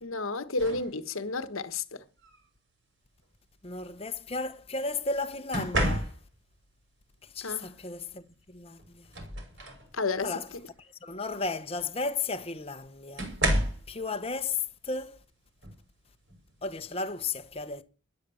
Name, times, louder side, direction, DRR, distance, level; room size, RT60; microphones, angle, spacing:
voice 1, 0.0-2.0 7.4-7.7 9.9-10.4, left 3 dB, 75° left, 1.4 m, -31 dB
sound 1, 0.6-0.9 2.2-2.5 5.5-6.5 8.3-8.4 8.8-9.9 10.4-10.7 12.0-12.1 13.2-13.9 15.6-15.8 16.3-16.6, right 1 dB, 55° right, 6.0 m, -30 dB
voice 2, 3.6-6.1 7.2-9.1 10.2-10.5 11.0-13.3 13.9-15.2 16.6-17.8, left 3 dB, 30° left, 1.0 m, -34 dB
13.5 x 11.0 x 7.1 m
head